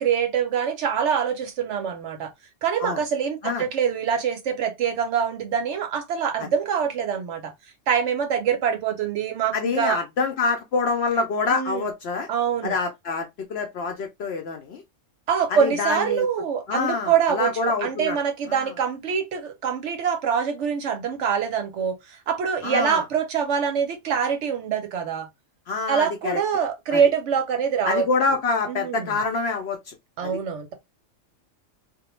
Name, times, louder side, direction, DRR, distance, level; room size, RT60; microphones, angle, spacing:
voice 1, 0.0-2.3 2.6-7.5 7.9-10.0 11.5-11.8 12.3-12.7 15.3-25.3 25.9-28.1 28.7-29.1 30.2-30.7, right 7 dB, 65° right, 0.8 m, -24 dB
voice 2, 9.5-12.3 12.6-14.8 15.5-16.3 16.7-18.2 18.5-18.7 22.6-23.0 25.7-26.4 26.9-27.0 27.8-30.0 30.2-30.4, left 4 dB, 65° left, 0.7 m, -26 dB
2.3 x 2.1 x 2.9 m
omnidirectional pair, 1.4 m